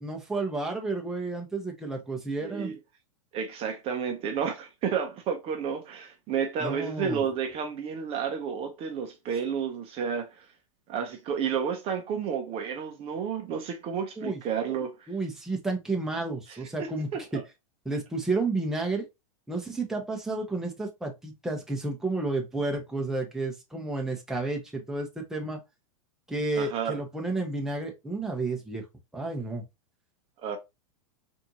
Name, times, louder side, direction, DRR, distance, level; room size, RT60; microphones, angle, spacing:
voice 1, 0.0-2.7 6.6-7.2 14.2-14.4 15.1-17.4 17.8-19.0 19.5-25.6 26.3-28.8 29.1-29.6, right 3 dB, 5° right, 0.9 m, -31 dB
voice 2, 2.4-2.8 3.3-10.5 10.9-15.1 16.5-17.2 26.6-27.0 30.4-30.6, right 7 dB, 30° right, 0.7 m, -31 dB
4.2 x 2.6 x 2.8 m
hypercardioid pair, 130°, 18 cm